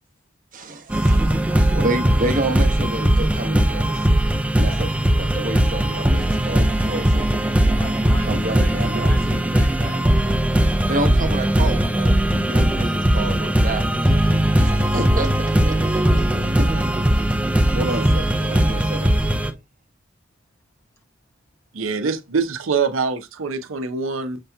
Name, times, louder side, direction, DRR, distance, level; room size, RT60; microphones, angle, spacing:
voice 1, 0.5-4.1 4.6-7.5 8.3-9.1 10.9-14.2 14.6-15.3 15.6-16.2 17.7-19.1, right 1 dB, 45° right, 0.9 m, -29 dB
sound 1, 0.9-19.5, right 1 dB, 5° right, 0.5 m, -19 dB
voice 2, 7.2-10.0 14.6-15.1 16.0-16.5, equal, 10° left, 1.0 m, -38 dB
voice 3, 21.7-24.4, right 5 dB, 85° right, 0.7 m, -24 dB
6.6 x 2.8 x 2.3 m
head